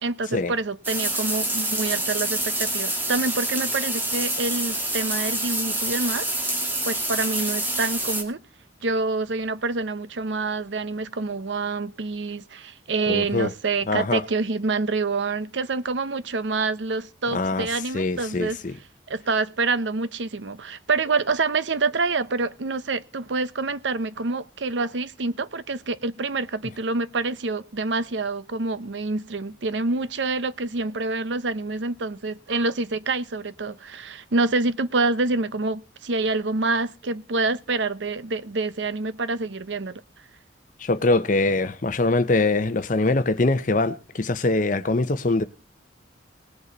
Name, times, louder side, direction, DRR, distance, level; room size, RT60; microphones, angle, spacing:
voice 1, 0.0-6.3 6.8-8.4 8.8-18.6 19.1-40.0, right 3 dB, 85° right, 0.8 m, -27 dB
sound 1, 0.8-8.2, right 1 dB, 10° right, 2.0 m, -27 dB
voice 2, 13.1-13.5 13.9-14.2 17.3-17.7 17.9-18.7 40.8-45.4, left 2 dB, 45° left, 0.8 m, -23 dB
19.0 x 8.3 x 4.1 m
head